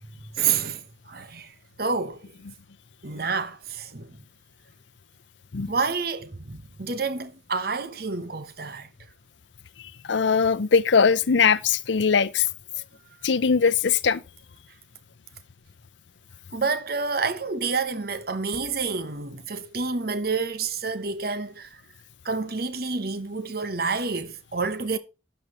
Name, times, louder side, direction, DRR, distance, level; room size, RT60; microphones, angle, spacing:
voice 1, 0.3-1.5 1.8-2.2 3.0-4.2 5.7-8.9 16.5-21.7 22.2-25.0, right 4 dB, 50° right, 1.1 m, -28 dB
voice 2, 10.0-12.5 13.2-14.2, left 6 dB, 75° left, 0.6 m, -20 dB
12.5 x 8.2 x 3.0 m
head